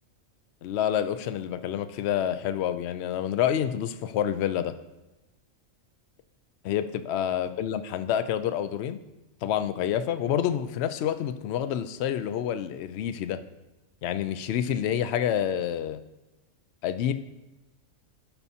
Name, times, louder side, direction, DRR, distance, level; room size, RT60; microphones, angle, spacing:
voice 1, 0.6-4.7 6.6-9.0 9.4-13.4 14.0-16.0 16.8-17.1, left 10 dB, 65° left, 11 dB, 0.8 m, -28 dB
16.5 x 5.6 x 2.8 m, 1.1 s
omnidirectional pair, 1.4 m